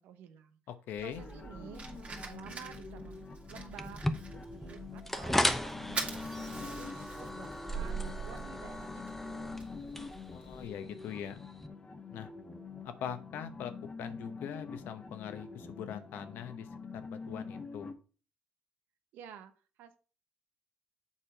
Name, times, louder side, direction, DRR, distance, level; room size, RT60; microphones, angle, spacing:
voice 1, 0.0-0.6 1.0-4.0 4.3-9.6 19.1-19.5 19.8-20.0, right 9 dB, 80° right, 9 dB, 0.9 m, -51 dB
voice 2, 0.7-1.2 10.3-11.4 12.1-12.3 12.8-13.7 14.0-16.7 16.9-17.9, left 9 dB, 80° left, 10 dB, 0.9 m, -42 dB
Fire, 1.0-10.7, right 4 dB, 40° right, 2.1 m, -44 dB
sound 1, 1.2-17.9, left 4 dB, 35° left, 1.2 m, -46 dB
sound 2, 3.8-11.7, left 1 dB, 5° left, 0.8 m, -37 dB
7.3 x 4.3 x 5.0 m, 0.37 s
supercardioid pair, 60°, 3 cm